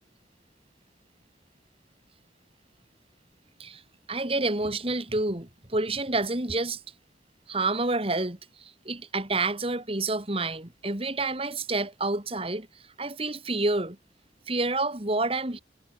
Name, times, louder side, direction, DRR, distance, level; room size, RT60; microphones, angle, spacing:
voice 1, 4.1-6.8 7.5-12.7 13.0-14.0 14.5-15.6, right 2 dB, 30° right, 2.2 m, -28 dB
head